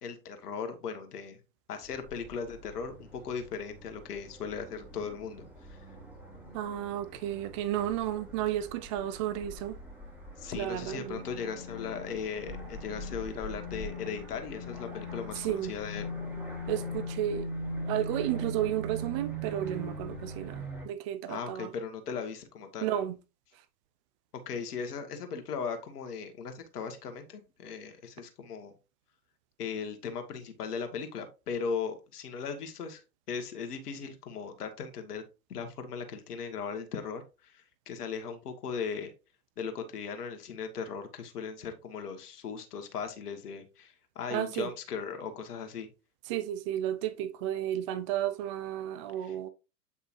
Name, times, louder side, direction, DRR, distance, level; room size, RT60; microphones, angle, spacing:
voice 1, 0.0-1.4 1.7-5.9 10.4-16.1 21.3-22.9 24.4-28.7 29.6-33.0 33.3-35.2 35.5-39.1 39.6-45.9 49.2-49.4, left 6 dB, 65° left, 1.7 m, -38 dB
sound 1, 1.8-20.8, equal, 5° right, 3.1 m, -41 dB
voice 2, 6.5-9.8 10.6-11.2 15.4-15.7 16.7-17.5 17.9-21.7 22.8-23.1 44.3-44.7 46.3-49.5, right 12 dB, 20° right, 0.3 m, -32 dB
8.7 x 5.5 x 2.6 m
hypercardioid pair, 105°, 49 cm